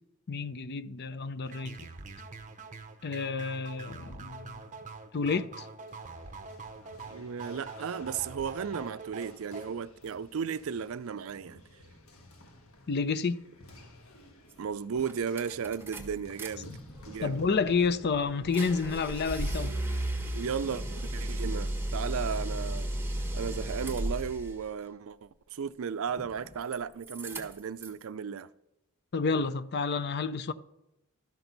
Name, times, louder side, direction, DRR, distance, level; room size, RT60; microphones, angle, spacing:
voice 1, 0.3-1.9 3.0-4.5 5.1-5.7 12.9-13.4 16.7-16.8 17.2-19.7 29.1-30.5, left 4 dB, 50° left, 0.5 m, -30 dB
sound 1, 1.4-9.8, right 3 dB, 35° right, 0.8 m, -45 dB
sound 2, 5.9-17.9, left 1 dB, 70° left, 1.5 m, -54 dB
voice 2, 7.1-11.6 14.6-16.7 17.1-17.4 20.3-22.9 23.3-28.5, right 6 dB, 65° right, 0.4 m, -35 dB
sound 3, 14.5-14.6 15.0-16.5 16.8-24.6 26.1-26.8 27.0-28.0, right 1 dB, 10° right, 1.5 m, -35 dB
13.0 x 6.1 x 4.0 m
head